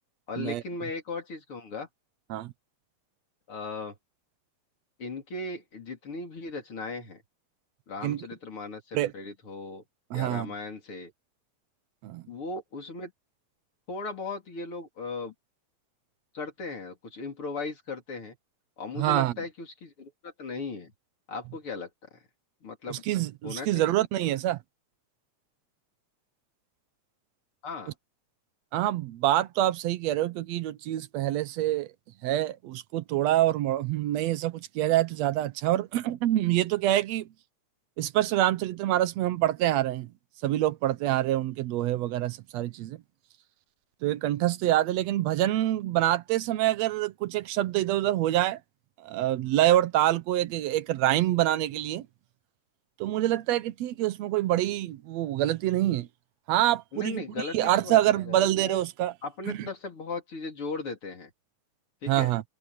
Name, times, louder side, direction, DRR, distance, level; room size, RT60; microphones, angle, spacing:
voice 1, 0.3-1.9 3.5-4.0 5.0-7.2 7.9-9.8 10.1-11.1 12.3-13.1 13.9-15.3 16.3-18.4 18.8-20.9 21.3-22.2 22.6-23.0 23.4-23.9 24.2-24.3 27.6-27.9 56.9-58.8 59.2-61.3 62.0-62.3, left 3 dB, 45° left, 4.3 m, -37 dB
voice 2, 10.1-10.5 12.0-12.2 19.0-19.3 22.9-24.6 28.7-31.9 32.2-37.3 38.0-40.1 40.4-43.0 44.0-48.6 49.0-52.1 53.0-56.1 56.5-57.2 57.5-59.1 59.5-59.6 62.1-62.4, right 14 dB, 70° right, 1.9 m, -26 dB
omnidirectional pair, 3.4 m